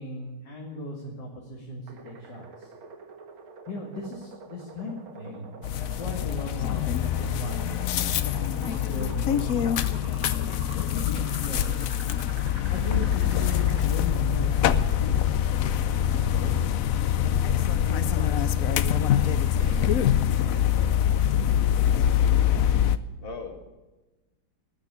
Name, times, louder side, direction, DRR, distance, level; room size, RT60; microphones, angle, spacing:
voice 1, 0.0-2.7 3.7-7.7 8.2-9.9 10.9-11.8 12.7-15.2 15.9-16.8 17.2-17.3 17.8-19.9 20.4-21.0, equal, 55° left, -2 dB, 2.8 m, -37 dB
sound 1, 1.9-13.9, right 5 dB, 75° right, 2.4 m, -47 dB
voice 2, 5.2-5.6 22.0-22.6 23.2-23.6, left 4 dB, 25° left, 4 dB, 2.0 m, -41 dB
sound 2, 5.6-23.0, left 10 dB, 90° left, 0.7 m, -24 dB
18.5 x 6.6 x 9.9 m, 1.1 s
omnidirectional pair, 2.3 m